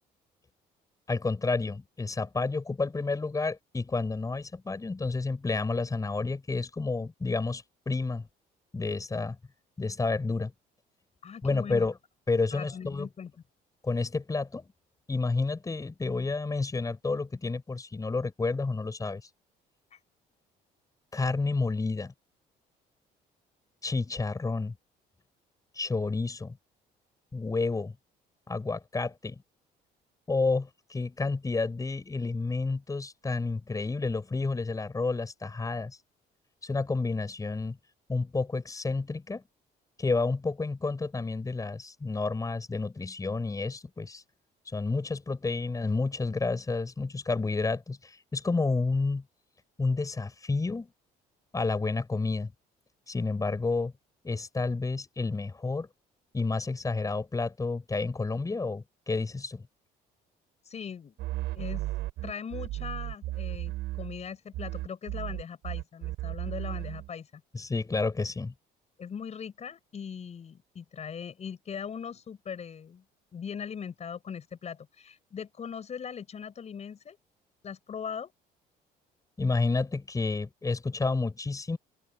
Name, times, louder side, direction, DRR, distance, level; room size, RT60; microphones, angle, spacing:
voice 1, 1.1-8.3 8.7-9.4 9.8-10.5 11.4-11.9 12.3-13.1 13.8-14.7 15.1-19.2 21.1-22.1 23.8-24.7 25.8-26.6 27.3-28.0 28.5-29.4 30.3-36.0 36.6-37.8 38.1-39.4 40.0-44.2 44.7-49.2 49.8-50.9 51.5-52.5 53.1-53.9 54.2-55.9 56.3-59.6 67.5-68.5 79.4-81.8, left 3 dB, 20° left, 6.9 m, -30 dB
voice 2, 11.2-11.9 12.5-13.3 19.9-20.0 60.6-61.2 61.5-61.9 62.2-63.7 64.0-67.4 69.0-73.0 73.3-77.2 77.6-78.3, left 7 dB, 40° left, 6.0 m, -40 dB
sound 1, 61.2-64.3 64.5-67.1, right 17 dB, 85° right, 5.2 m, -35 dB
open air
cardioid pair, 110°, 17 cm